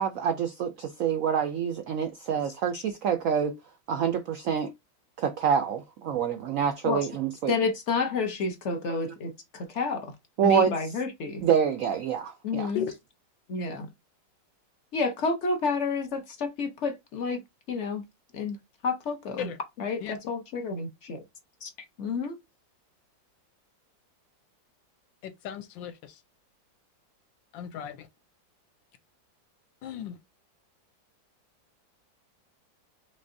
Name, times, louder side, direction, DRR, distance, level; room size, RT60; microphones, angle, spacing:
voice 1, 0.0-3.6 3.9-4.7 5.2-7.6 8.9-9.0 10.4-10.9 11.4-12.7, right 8 dB, 90° right, 0.7 m, -27 dB
voice 2, 7.5-10.1 10.4-11.4 12.4-12.9 13.5-13.9 14.9-17.4 17.7-18.0 18.3-18.6 18.8-19.5 19.8-21.2 21.6-21.7 22.0-22.4, left 4 dB, 60° left, 0.7 m, -30 dB
voice 3, 25.2-26.1 27.5-28.1 29.8-30.2, left 9 dB, 90° left, 1.4 m, -36 dB
5.3 x 3.2 x 2.6 m
omnidirectional pair, 2.0 m